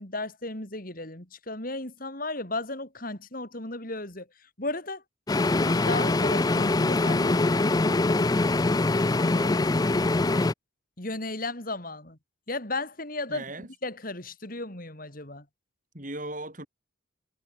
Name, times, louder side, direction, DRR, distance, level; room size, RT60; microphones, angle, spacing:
voice 1, 0.0-4.3 4.6-5.0 5.5-8.1 11.0-12.2 12.5-13.4 13.8-15.4, left 2 dB, 45° left, 4.0 m, -35 dB
sound 1, 5.3-10.5, left 2 dB, 20° left, 0.4 m, -23 dB
voice 2, 9.2-9.7 13.3-13.7 15.9-16.7, right 1 dB, 40° right, 7.4 m, -38 dB
head